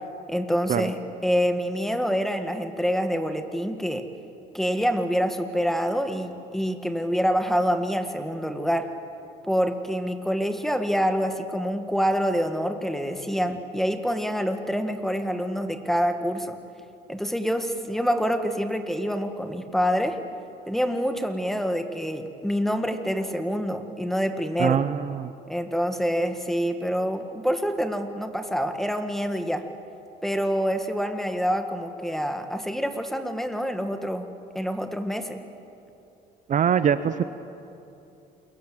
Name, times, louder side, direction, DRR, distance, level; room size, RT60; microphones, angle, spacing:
voice 1, 0.3-4.1 4.5-8.9 9.5-16.6 17.1-20.2 20.7-24.8 25.5-29.7 30.2-34.3 34.5-35.4, equal, ahead, 7 dB, 1.9 m, -26 dB
voice 2, 24.6-25.3 36.5-37.2, right 8 dB, 45° right, 12 dB, 0.9 m, -23 dB
28.5 x 22.5 x 8.0 m, 2.8 s
cardioid pair, 110°, 17 cm